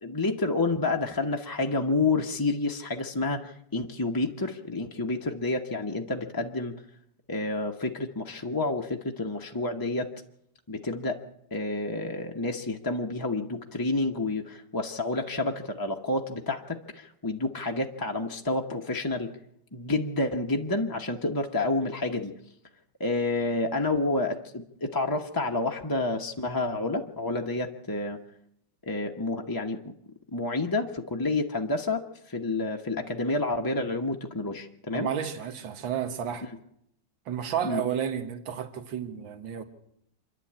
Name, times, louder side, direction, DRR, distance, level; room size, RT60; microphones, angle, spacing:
voice 1, 0.0-6.8 7.3-10.1 10.7-11.2 11.5-19.3 19.7-22.3 23.0-28.2 28.8-29.9 30.3-35.1 36.4-36.5 37.6-37.8, left 2 dB, 20° left, 0.6 m, -29 dB
voice 2, 34.9-36.5 37.3-39.6, right 9 dB, 85° right, 2.1 m, -31 dB
26.5 x 11.0 x 8.7 m
omnidirectional pair, 2.1 m